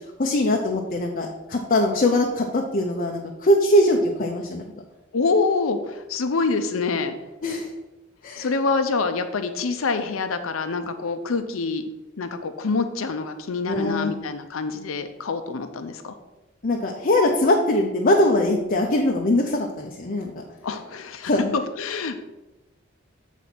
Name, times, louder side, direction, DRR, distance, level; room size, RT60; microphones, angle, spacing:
voice 1, 0.2-4.6 7.4-7.7 8.2-8.5 13.7-14.1 16.6-20.4 21.2-21.5, left 1 dB, 45° left, 1 dB, 0.7 m, -21 dB
voice 2, 5.1-7.2 8.4-11.8 12.2-16.1 20.6-22.2, left 4 dB, 85° left, 8 dB, 0.6 m, -26 dB
7.8 x 4.1 x 5.9 m, 1.0 s
head